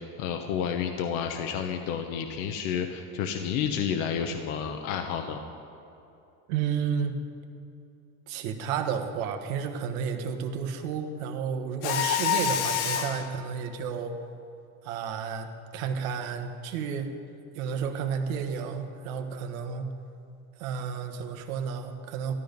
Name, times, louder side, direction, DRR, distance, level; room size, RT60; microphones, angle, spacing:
voice 1, 0.0-5.4, left 7 dB, 60° left, 5 dB, 1.1 m, -30 dB
voice 2, 6.5-7.2 8.3-14.1 14.8-15.5 15.7-17.1 17.5-19.9 20.6-22.3, right 7 dB, 80° right, 5 dB, 1.5 m, -31 dB
Mechanisms, 11.8-13.3, left 8 dB, 90° left, 1.2 m, -27 dB
13.5 x 13.0 x 5.3 m, 2.8 s
supercardioid pair, 140°, 41 cm